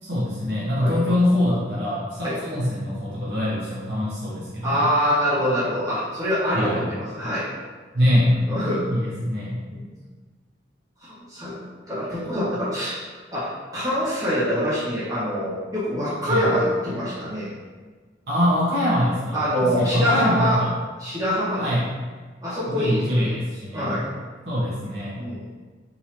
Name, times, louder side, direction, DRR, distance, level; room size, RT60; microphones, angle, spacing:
voice 1, 0.0-4.9 6.5-6.9 7.9-8.3 8.9-9.6 16.3-16.5 18.3-20.7 21.6-21.8 22.7-24.0 24.4-25.2, left 1 dB, 65° right, -9 dB, 1.1 m, -23 dB
voice 2, 4.6-7.5 8.1-8.9 9.7-9.9 11.0-11.6 11.9-13.0 13.3-17.5 19.3-20.6 21.0-21.6 22.4-23.3 23.7-24.1 25.2-25.5, equal, 20° right, -11 dB, 1.5 m, -25 dB
3.9 x 2.8 x 3.0 m, 1.4 s
head